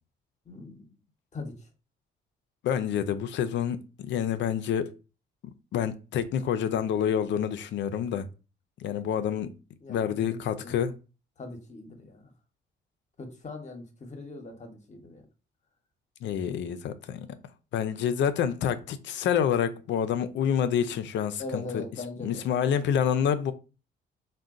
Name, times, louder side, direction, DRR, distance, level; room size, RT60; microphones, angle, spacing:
voice 1, 0.5-0.9 1.3-1.5 9.8-10.7 11.4-12.3 13.2-15.2 21.4-22.4, left 2 dB, 35° left, 0.8 m, -40 dB
voice 2, 2.6-4.9 5.4-8.3 8.8-9.5 9.9-11.0 16.2-17.3 17.7-21.8 22.2-23.5, left 8 dB, 65° left, 0.4 m, -28 dB
3.7 x 2.1 x 2.4 m
cardioid pair, 90°, 20 cm